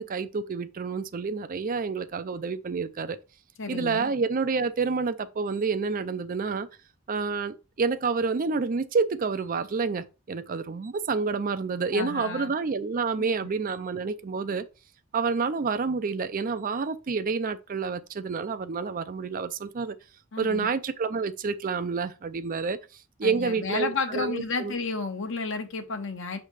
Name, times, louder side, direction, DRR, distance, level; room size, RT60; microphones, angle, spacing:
voice 1, 0.0-3.2 3.7-6.7 7.1-14.7 15.1-20.0 20.4-22.8 23.2-24.7, right 4 dB, 40° right, 0.4 m, -28 dB
voice 2, 3.6-4.1 11.9-12.5 13.2-13.3 20.3-20.7 23.2-26.4, left 4 dB, 65° left, 1.1 m, -32 dB
6.5 x 3.3 x 4.9 m
head